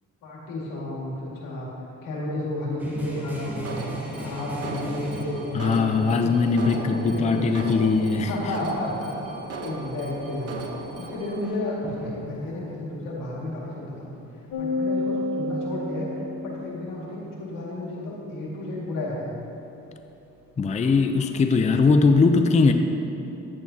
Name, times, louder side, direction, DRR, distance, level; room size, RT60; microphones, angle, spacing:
voice 1, 0.2-1.7 2.0-3.7 4.2-7.4 8.3-9.2 9.6-10.6 11.0-19.3, left 1 dB, 90° left, -4 dB, 2.0 m, -32 dB
sound 1, 2.8-5.9 8.5-9.2 9.5-12.8 20.0-21.3 21.8-21.9, equal, 5° right, 1.4 m, -38 dB
Alarm, 3.6-11.4, right 3 dB, 50° right, 1.0 m, -37 dB
voice 2, 5.5-8.3 20.6-22.7, left 4 dB, 20° left, 7 dB, 0.5 m, -20 dB
sound 2, 14.5-17.0, left 2 dB, 75° left, 1.1 m, -29 dB
10.5 x 8.6 x 2.8 m, 2.9 s
cardioid pair, 90°, 32 cm